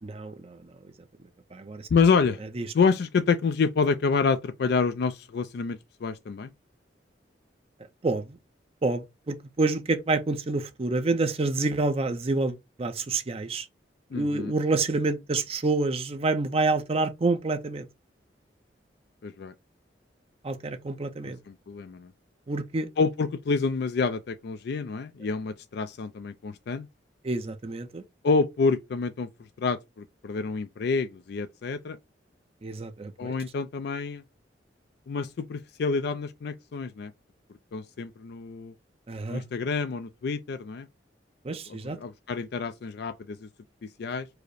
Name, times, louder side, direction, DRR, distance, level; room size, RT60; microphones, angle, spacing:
voice 1, 0.0-0.6 1.5-1.9 2.6-2.7 8.0-8.2 8.8-13.7 14.1-17.9 20.4-21.4 22.5-22.9 27.2-28.0 32.6-33.3 39.1-39.4 41.4-42.0, right 3 dB, 35° right, 0.5 m, -28 dB
voice 2, 1.9-2.4 2.7-6.5 14.1-14.5 19.2-19.5 21.2-22.1 23.0-26.9 28.2-29.3 29.6-32.0 33.2-34.2 35.1-37.1 37.7-38.7 39.3-40.9 41.7-43.5 44.0-44.3, left 4 dB, 65° left, 0.4 m, -28 dB
4.8 x 2.1 x 4.7 m
head